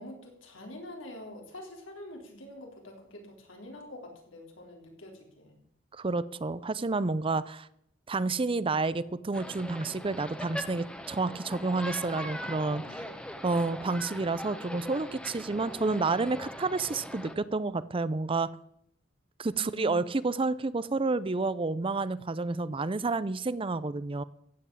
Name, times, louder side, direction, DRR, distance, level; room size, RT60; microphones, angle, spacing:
voice 1, 0.0-5.6 12.8-13.0 19.5-20.0, left 1 dB, 90° left, 2 dB, 3.8 m, -46 dB
voice 2, 5.9-7.7 8.1-13.0 13.4-18.5 19.4-24.2, right 3 dB, 30° right, 17 dB, 0.5 m, -30 dB
sound 1, 9.3-17.3, equal, 5° left, 1.3 m, -41 dB
15.0 x 8.0 x 8.4 m, 0.73 s
head